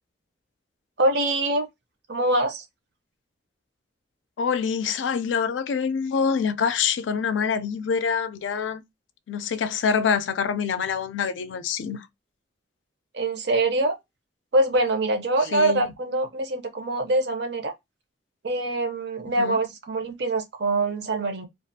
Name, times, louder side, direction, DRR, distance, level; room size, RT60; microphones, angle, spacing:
voice 1, 1.0-1.7 2.1-2.6 13.1-14.0 14.5-17.7 18.4-21.5, right 2 dB, 65° right, 0.6 m, -24 dB
voice 2, 4.4-8.8 9.3-12.1 15.5-15.9 19.4-19.6, left 6 dB, 80° left, 0.4 m, -25 dB
2.4 x 2.3 x 2.6 m
head